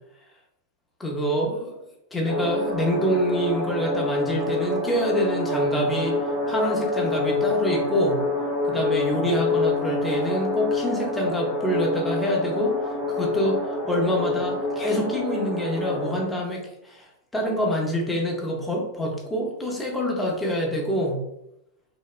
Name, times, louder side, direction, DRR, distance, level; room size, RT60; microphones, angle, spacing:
voice 1, 1.0-6.2 6.5-8.2 8.6-12.8 13.1-17.1 17.3-21.2, equal, 10° left, -1 dB, 0.6 m, -26 dB
sound 1, 2.3-16.2, left 2 dB, 65° left, 0.7 m, -27 dB
2.9 x 2.0 x 2.3 m, 0.83 s
figure-of-eight pair, 90°, 0 cm